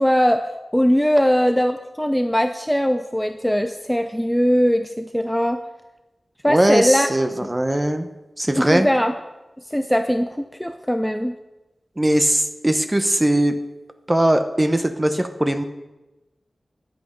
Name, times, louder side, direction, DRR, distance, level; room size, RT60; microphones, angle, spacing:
voice 1, 0.0-5.6 6.4-7.1 7.4-7.5 8.6-9.1 9.7-11.3, equal, 5° left, 7 dB, 0.5 m, -20 dB
voice 2, 6.5-8.1 8.4-8.9 12.0-13.5 14.1-15.6, right 1 dB, 20° right, 8 dB, 0.9 m, -20 dB
11.5 x 7.9 x 5.2 m, 1.0 s
wide cardioid pair, 85°, 0 cm